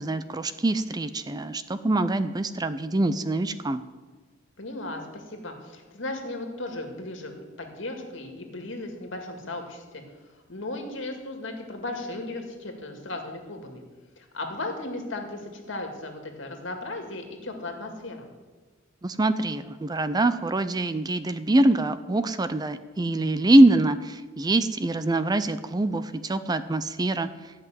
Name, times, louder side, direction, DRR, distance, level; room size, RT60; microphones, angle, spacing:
voice 1, 0.0-3.8 19.0-27.3, right 2 dB, 20° right, 12 dB, 0.5 m, -24 dB
voice 2, 4.6-7.3 7.6-10.0 10.5-13.8 14.2-18.3, left 2 dB, 70° left, 3 dB, 2.2 m, -36 dB
13.5 x 5.9 x 9.2 m, 1.3 s
head